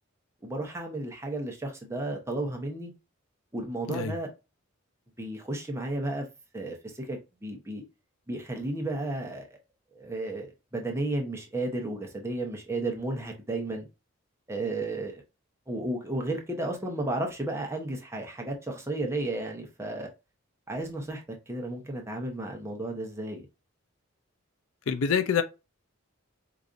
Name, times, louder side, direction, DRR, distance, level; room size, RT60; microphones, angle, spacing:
voice 1, 0.4-2.9 3.5-4.3 5.2-6.3 6.5-7.8 8.3-9.6 9.9-10.5 10.7-13.9 14.5-15.2 15.7-20.1 20.7-23.5, right 2 dB, 10° right, 0.8 m, -33 dB
voice 2, 24.9-25.4, left 7 dB, 70° left, 0.4 m, -26 dB
4.8 x 2.6 x 2.5 m
head